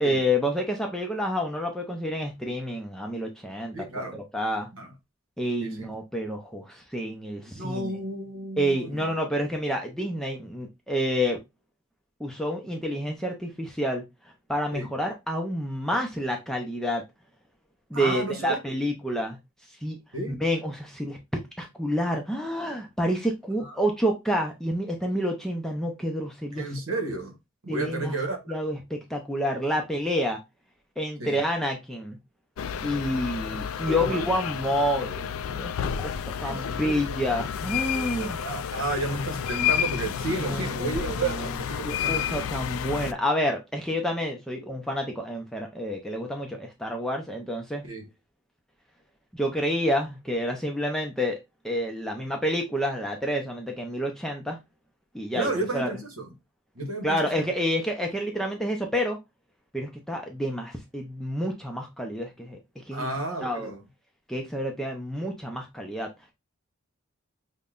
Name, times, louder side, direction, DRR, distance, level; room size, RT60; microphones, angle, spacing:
voice 1, 0.0-4.7 5.4-7.9 8.6-11.4 12.2-14.0 14.5-17.0 17.9-19.4 19.8-20.0 20.4-26.7 27.7-28.2 28.5-30.4 31.0-32.2 32.8-38.4 40.4-41.5 41.8-47.8 49.3-51.4 51.6-54.6 55.1-55.9 57.0-59.2 59.7-62.6 62.9-63.1 63.4-63.7 64.3-66.1, equal, ahead, 0.5 m, -29 dB
voice 2, 3.7-4.2 4.7-4.9 5.6-5.9 7.5-9.1 14.7-14.9 17.9-18.6 20.1-20.4 23.6-23.8 26.5-27.4 27.6-28.6 31.2-31.4 33.9-34.3 36.4-37.2 38.2-42.5 47.8-48.1 55.4-56.3 56.7-57.3 62.9-63.8, right 2 dB, 70° right, 1.1 m, -32 dB
sound 1, 32.6-43.1, left 9 dB, 70° left, 0.3 m, -31 dB
5.3 x 2.2 x 2.4 m
head